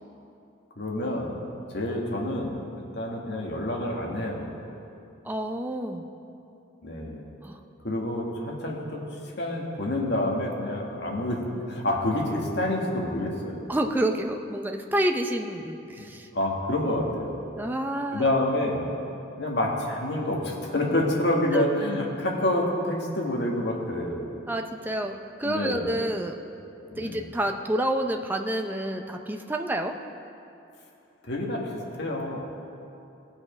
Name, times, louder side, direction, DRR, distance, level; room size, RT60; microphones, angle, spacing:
voice 1, 0.8-1.3 1.7-2.6 2.9-4.5 6.8-7.2 7.8-9.0 9.4-13.7 16.0-16.1 16.3-17.4 18.1-18.8 19.4-24.3 25.4-25.9 26.9-27.2 31.2-32.4, left 1 dB, 55° left, -1 dB, 1.7 m, -28 dB
voice 2, 5.2-6.1 7.4-7.6 13.7-16.3 17.6-18.3 21.5-21.6 24.5-26.4 27.0-30.0, right 1 dB, 10° right, 3 dB, 0.5 m, -28 dB
18.0 x 6.3 x 5.0 m, 2.7 s
head